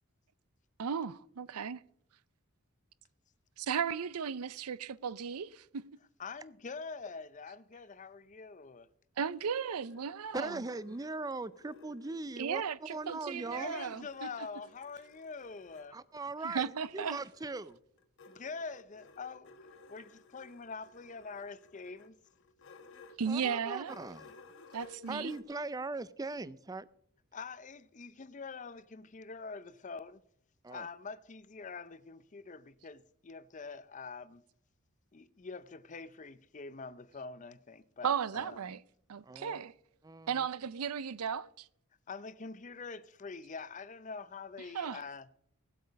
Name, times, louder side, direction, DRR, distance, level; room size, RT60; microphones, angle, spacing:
voice 1, 0.8-1.8 3.6-5.8 9.2-10.6 12.4-14.3 16.4-17.2 23.2-24.0 24.7-25.3 38.0-38.8 39.1-39.7 40.3-41.7 44.7-45.0, right 7 dB, 85° right, 0.5 m, -35 dB
voice 2, 6.2-8.9 13.6-16.0 18.3-19.5 19.9-22.2 27.3-30.2 30.7-34.4 35.1-38.6 42.1-45.3, left 4 dB, 35° left, 0.5 m, -45 dB
sound 1, 9.6-12.6 13.0-15.9 16.9-25.4, left 3 dB, 55° left, 1.2 m, -58 dB
voice 3, 10.3-12.6 12.9-13.8 15.9-17.8 23.3-24.3 25.1-26.9 30.6-30.9 39.2-39.6 40.0-40.5, right 3 dB, 15° right, 0.4 m, -40 dB
18.0 x 8.0 x 5.2 m
head